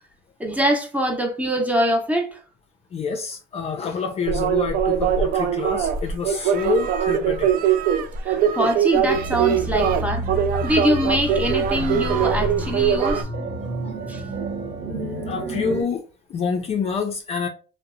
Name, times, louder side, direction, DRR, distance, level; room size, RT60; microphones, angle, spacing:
voice 1, 0.4-2.4 8.2-10.2 10.6-13.3 14.1-14.2, equal, 10° right, 0.6 m, -23 dB
voice 2, 2.9-7.5 10.5-10.6 13.8-13.9 14.9-16.0 16.3-17.5, left 5 dB, 35° left, 0.4 m, -27 dB
sound 1, 4.3-13.2, right 8 dB, 50° right, 0.4 m, -22 dB
sound 2, 9.0-15.8, right 2 dB, 65° right, 0.8 m, -30 dB
2.7 x 2.0 x 2.5 m
cardioid pair, 105°, 19 cm